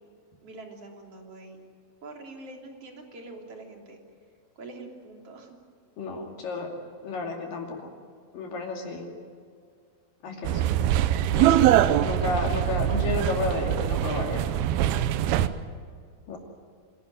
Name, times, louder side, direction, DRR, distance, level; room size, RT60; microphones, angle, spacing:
voice 1, 0.4-1.6 2.0-4.0 4.6-5.6, right 2 dB, 40° right, 2 dB, 3.8 m, -44 dB
voice 2, 6.0-6.7 7.0-7.9 8.3-9.1 10.2-10.6 11.3-11.7 12.0-14.4 16.3-16.4, left 3 dB, 65° left, 1 dB, 4.1 m, -31 dB
sound 1, 10.4-15.5, right 11 dB, 90° right, 2.8 m, -23 dB
25.5 x 17.0 x 9.8 m, 2.2 s
omnidirectional pair, 4.3 m